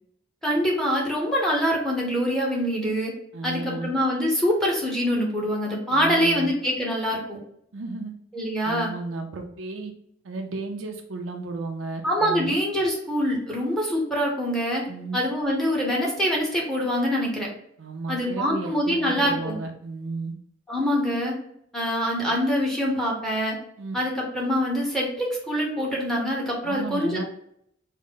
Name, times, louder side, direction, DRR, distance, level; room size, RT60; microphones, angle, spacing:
voice 1, 0.4-3.1 3.4-7.4 8.3-8.9 12.0-14.9 15.1-17.5 18.1-19.6 20.7-21.4 21.7-23.6 23.9-27.2, equal, 5° left, -3 dB, 0.8 m, -24 dB
voice 2, 3.3-3.9 5.9-6.5 7.7-8.1 8.6-9.9 10.2-12.6 14.9-15.2 17.8-20.3 23.8-24.0 26.6-27.2, right 3 dB, 75° right, 3 dB, 0.5 m, -33 dB
3.7 x 2.1 x 3.6 m, 0.71 s
head